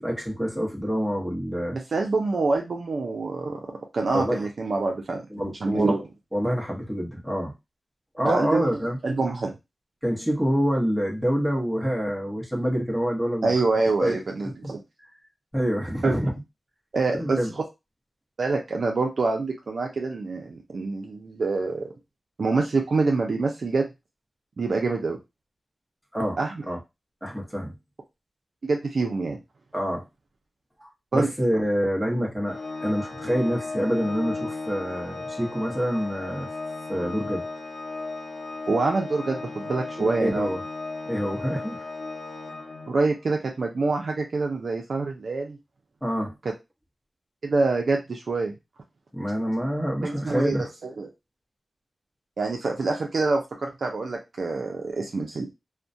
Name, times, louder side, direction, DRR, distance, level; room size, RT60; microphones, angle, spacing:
voice 1, 0.0-1.8 4.1-4.5 5.3-6.0 6.3-7.5 8.1-9.0 10.0-13.5 14.0-14.2 15.5-16.3 17.2-17.5 26.1-26.4 26.7-26.8 27.2-27.7 29.7-30.1 30.8-36.5 36.9-37.5 40.0-40.6 41.1-41.8 46.0-46.3 49.1-50.7, equal, 5° right, -2 dB, 0.9 m, -27 dB
voice 2, 1.7-3.7 3.9-5.2 5.6-6.0 8.2-8.7 9.0-9.5 13.4-14.8 16.0-16.3 16.9-17.4 18.4-21.9 22.4-23.9 24.6-25.2 26.4-26.5 28.6-29.4 31.1-31.3 38.7-40.5 42.9-45.6 47.4-48.5 50.0-51.1 52.4-55.5, right 3 dB, 75° right, 1 dB, 0.4 m, -26 dB
Organ, 32.5-43.2, left 3 dB, 70° left, 0.6 m, -35 dB
2.3 x 2.1 x 2.6 m, 0.23 s
cardioid pair, 55°, 0 cm